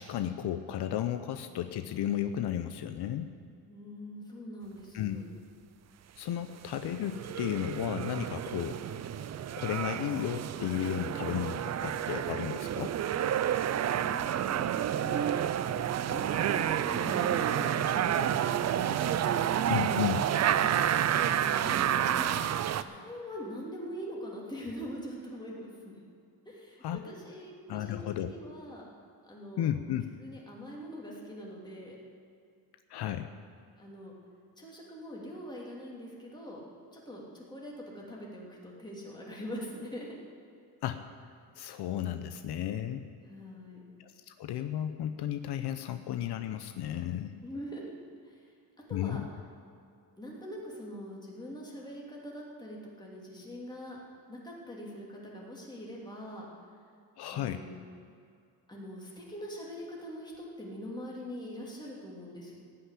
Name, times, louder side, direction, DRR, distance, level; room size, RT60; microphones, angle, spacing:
voice 1, 0.0-3.3 4.9-5.2 6.2-8.8 9.6-13.0 19.7-20.2 26.8-27.0 27.7-28.3 29.6-30.0 32.9-33.3 40.8-41.0 41.6-43.0 44.0-47.3 48.9-49.3 57.2-57.6, left 11 dB, 75° left, 9 dB, 0.7 m, -33 dB
voice 2, 3.7-5.3 13.7-15.6 15.9-19.0 20.5-20.7 21.5-22.4 22.8-26.0 26.4-28.9 29.2-29.7 30.2-32.0 33.8-34.1 34.6-36.6 36.9-40.1 43.2-43.8 47.4-47.9 48.2-48.5 48.9-49.2 50.2-54.0 54.3-56.5 57.3-57.8 58.7-62.6, equal, 10° left, -3 dB, 2.8 m, -43 dB
sound 1, 6.7-22.8, right 10 dB, 45° right, 0.4 m, -30 dB
16.5 x 5.8 x 9.9 m, 2.4 s
cardioid pair, 140°, 40 cm